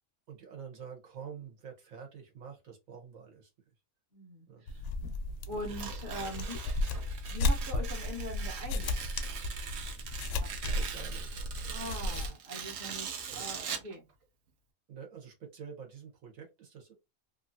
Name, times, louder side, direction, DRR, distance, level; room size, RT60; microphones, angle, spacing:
voice 1, 0.3-3.5 4.5-4.7 5.5-5.6 10.5-11.3 11.8-12.3 13.3-13.5 14.9-16.9, right 7 dB, 80° right, 1.3 m, -48 dB
voice 2, 4.1-4.9 5.5-6.7 7.3-9.0 10.2-10.9 11.7-14.0, equal, 40° right, 1.1 m, -42 dB
sound 1, 4.7-12.3, left 2 dB, 70° left, 0.8 m, -34 dB
Tearing, 5.6-13.9, right 7 dB, 60° right, 0.8 m, -42 dB
3.0 x 2.5 x 2.6 m
omnidirectional pair, 1.4 m